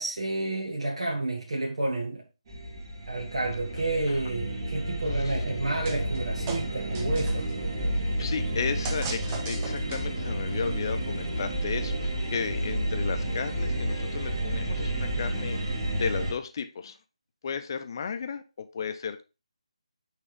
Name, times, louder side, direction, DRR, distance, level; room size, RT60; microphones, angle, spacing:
voice 1, 0.0-2.2 3.1-7.5, right 2 dB, 60° right, 1.4 m, -30 dB
sound 1, 2.5-16.3, right 1 dB, 35° right, 2.0 m, -31 dB
sound 2, 5.8-6.2 6.5-7.5 8.8-10.3, right 5 dB, 15° right, 0.6 m, -39 dB
voice 2, 8.2-17.0 17.4-19.2, left 6 dB, 35° left, 0.7 m, -34 dB
8.6 x 3.5 x 3.4 m
figure-of-eight pair, 150°, 4 cm